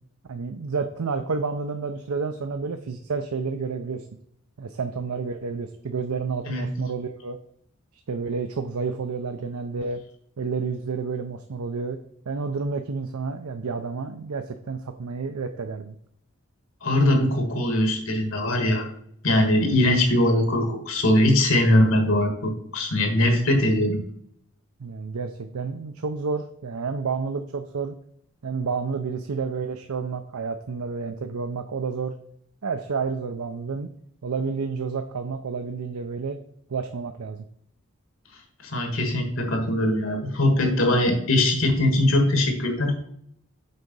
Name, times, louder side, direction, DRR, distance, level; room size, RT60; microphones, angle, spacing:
voice 1, 0.3-4.1 4.6-7.4 8.1-10.0 10.4-12.0 12.3-15.9 19.5-19.7 24.8-28.0 28.4-32.1 32.6-33.9 34.2-36.4 36.7-37.4, right 4 dB, 90° right, 7 dB, 0.6 m, -30 dB
voice 2, 16.8-18.9 19.2-24.0 38.6-43.1, left 1 dB, 70° left, 4 dB, 1.7 m, -21 dB
6.7 x 4.7 x 5.3 m, 0.68 s
head